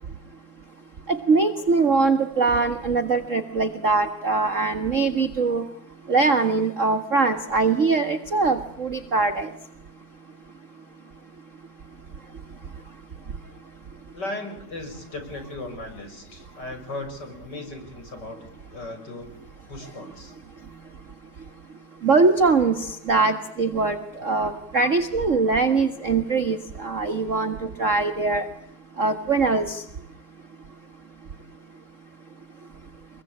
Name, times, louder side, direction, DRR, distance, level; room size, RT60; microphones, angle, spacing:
voice 1, 1.1-5.6 6.1-9.5 22.0-28.4 29.0-29.8, right 4 dB, 35° right, 8 dB, 1.5 m, -22 dB
voice 2, 14.1-18.4 18.7-19.3 19.7-20.3, left 2 dB, 35° left, 6 dB, 6.6 m, -36 dB
26.0 x 22.0 x 8.8 m, 0.70 s
omnidirectional pair, 3.3 m